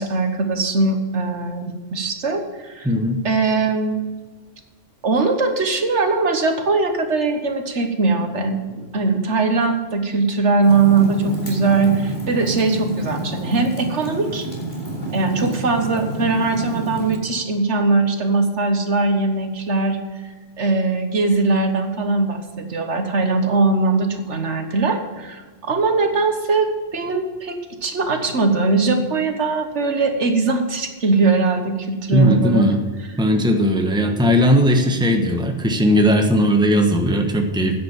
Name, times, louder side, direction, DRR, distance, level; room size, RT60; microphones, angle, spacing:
voice 1, 0.0-1.6 1.9-2.9 3.2-4.0 5.0-14.5 15.1-20.0 20.6-32.7 33.0-33.1, right 3 dB, 70° right, 6 dB, 1.6 m, -20 dB
voice 2, 2.8-3.2 32.1-32.8 33.2-37.8, equal, 5° right, 4 dB, 1.1 m, -17 dB
Fire, 10.6-17.2, right 2 dB, 40° left, 3.2 m, -29 dB
10.0 x 8.0 x 7.3 m, 1.4 s
omnidirectional pair, 1.2 m